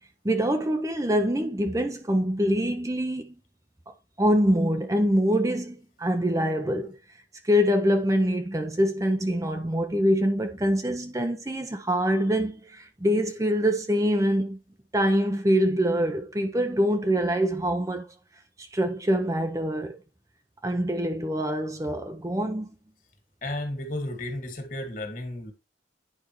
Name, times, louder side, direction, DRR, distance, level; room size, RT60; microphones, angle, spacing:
voice 1, 0.2-3.4 3.9-7.0 7.4-14.6 14.9-18.1 18.6-20.0 20.6-22.7, equal, 15° right, 0.7 m, -25 dB
voice 2, 23.4-25.5, left 1 dB, 45° left, 2.1 m, -33 dB
9.8 x 5.2 x 3.1 m
head